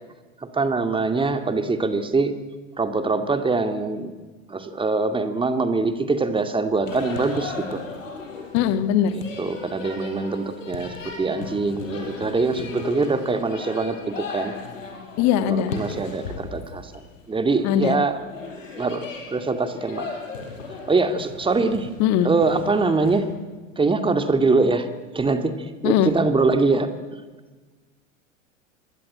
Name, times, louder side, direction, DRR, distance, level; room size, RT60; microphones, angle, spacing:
voice 1, 0.4-2.4 2.8-4.1 4.5-7.8 9.1-14.5 15.5-18.2 18.8-20.1 20.9-21.9 22.2-23.3 23.8-24.9 25.1-26.9, right 3 dB, 15° right, 8 dB, 2.4 m, -23 dB
sound 1, 6.9-23.2, left 4 dB, 70° left, 6.0 m, -36 dB
voice 2, 8.5-9.1 15.2-15.7 17.6-18.0 22.0-22.3 25.8-26.1, left 10 dB, 40° left, 10 dB, 2.2 m, -20 dB
26.0 x 22.5 x 8.7 m, 1.3 s
figure-of-eight pair, 85°, 40 cm